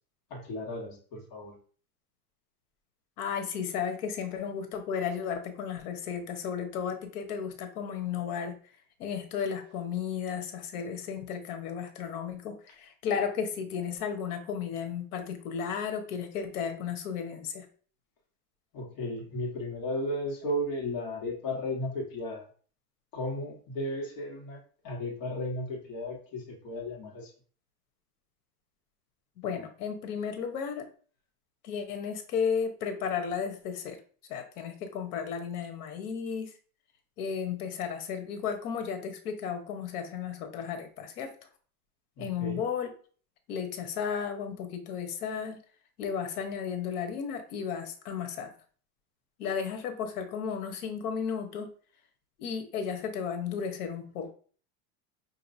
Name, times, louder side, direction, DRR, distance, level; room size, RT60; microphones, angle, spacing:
voice 1, 0.3-1.5 18.7-22.5 23.1-24.6 24.8-27.3 42.2-42.6, left 1 dB, 50° left, 0 dB, 1.5 m, -35 dB
voice 2, 3.2-8.6 9.0-17.7 29.4-30.8 31.6-34.0 34.3-36.5 37.2-41.3 42.2-42.9 43.5-45.6 46.0-48.5 49.4-51.7 52.4-54.3, left 7 dB, 85° left, 6 dB, 1.0 m, -34 dB
5.3 x 2.8 x 2.7 m, 0.43 s
supercardioid pair, 135°, 44 cm